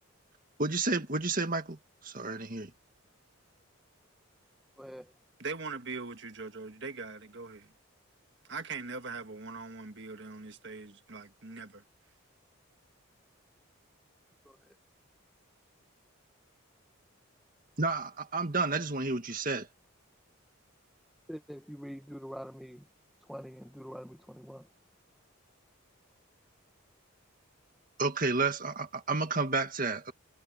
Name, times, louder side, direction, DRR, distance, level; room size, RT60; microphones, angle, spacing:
voice 1, 0.6-1.8 2.0-2.7 17.8-19.7 28.0-30.1, right 3 dB, 40° right, 2.0 m, -31 dB
voice 2, 4.8-5.1 14.4-14.7 21.3-22.9 23.3-24.7, equal, ahead, 1.1 m, -44 dB
voice 3, 5.4-7.7 8.5-11.8, right 4 dB, 55° right, 1.7 m, -41 dB
head